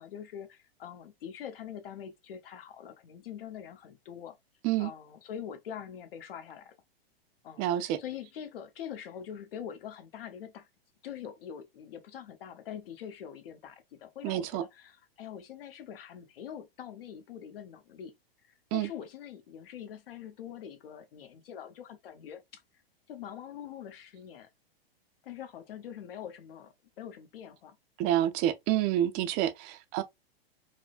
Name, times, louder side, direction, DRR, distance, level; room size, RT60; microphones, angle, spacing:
voice 1, 0.0-4.4 4.8-6.7 7.4-10.7 11.0-18.2 18.4-22.6 23.1-24.5 25.2-27.8 28.0-28.3, left 9 dB, 70° left, 1.0 m, -44 dB
voice 2, 7.6-8.0 14.2-14.6 18.7-18.9 28.0-30.0, right 12 dB, 30° right, 0.4 m, -28 dB
4.7 x 2.0 x 2.4 m
hypercardioid pair, 120°, 30 cm